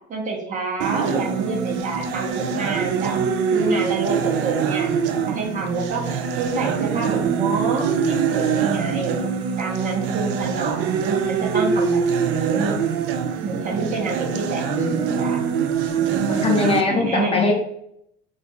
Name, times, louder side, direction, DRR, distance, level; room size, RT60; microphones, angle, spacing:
voice 1, 0.1-3.2 3.5-4.9 5.3-9.2 9.6-12.8 13.4-15.4 15.9-17.4, right 3 dB, 40° right, -1 dB, 0.9 m, -27 dB
sound 1, 0.8-16.8, right 6 dB, 70° right, 0.4 m, -24 dB
voice 2, 16.3-17.5, left 3 dB, 30° left, 1 dB, 0.6 m, -21 dB
2.9 x 2.5 x 3.5 m, 0.74 s
cardioid pair, 125°, 20 cm